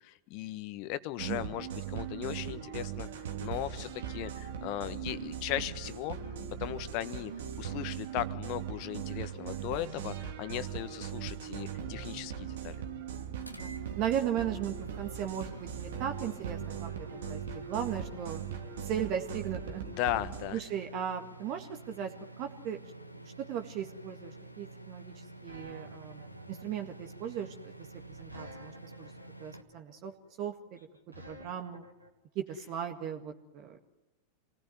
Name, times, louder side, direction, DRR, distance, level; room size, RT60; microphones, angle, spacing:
voice 1, 0.0-6.2 6.6-7.3 7.6-12.8 19.9-20.6, left 14 dB, 45° left, 12 dB, 1.5 m, -37 dB
voice 2, 1.2-1.6 13.5-18.4 18.8-19.8 20.5-22.1 22.4-22.8 23.2-25.1 25.4-26.2 26.5-27.7 28.2-29.1 29.4-30.1 30.4-30.8 31.3-31.9 32.4-33.8, right 9 dB, 40° right, 5 dB, 2.0 m, -37 dB
sound 1, 1.2-20.6, right 8 dB, 60° right, 2.4 m, -39 dB
sound 2, 13.4-29.6, right 2 dB, 90° left, 1.5 m, -49 dB
sound 3, 23.9-32.1, right 1 dB, 85° right, 3.2 m, -51 dB
28.0 x 19.5 x 9.4 m, 0.99 s
figure-of-eight pair, 90°, 0 cm